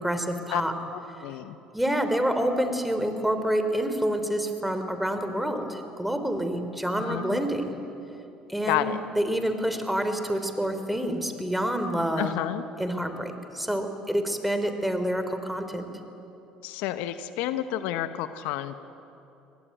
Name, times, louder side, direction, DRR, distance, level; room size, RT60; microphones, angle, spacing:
voice 1, 0.0-0.7 1.7-7.8 8.5-12.3 12.8-15.9, equal, 5° right, 7 dB, 3.3 m, -28 dB
voice 2, 0.9-1.6 7.1-7.4 8.7-9.0 12.2-12.6 16.6-18.7, left 13 dB, 70° left, 11 dB, 0.9 m, -30 dB
23.5 x 18.5 x 9.2 m, 2.9 s
hypercardioid pair, 65°, 3 cm